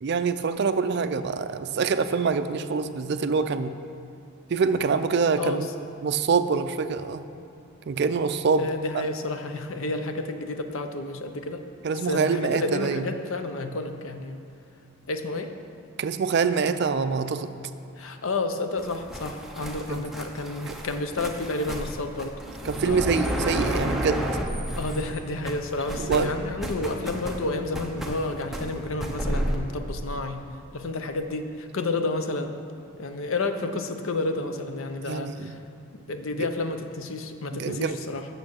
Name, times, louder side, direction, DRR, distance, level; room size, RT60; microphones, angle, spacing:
voice 1, 0.0-3.8 4.5-5.7 6.0-7.2 7.9-8.7 8.9-9.0 11.8-13.1 16.0-17.5 19.9-20.0 20.7-20.8 22.6-24.2 26.0-26.3 35.1-35.6 36.3-36.5 37.5-38.0, right 5 dB, 50° right, 11 dB, 0.4 m, -25 dB
voice 2, 8.6-11.6 12.0-14.4 15.1-15.5 18.0-22.4 22.8-23.0 24.8-30.4 30.7-32.5 33.0-35.6 36.1-38.3, left 2 dB, 70° left, 7 dB, 0.6 m, -30 dB
sound 1, 18.8-25.2 25.4-29.6, equal, ahead, 0.6 m, -32 dB
8.5 x 6.6 x 6.4 m, 2.6 s
head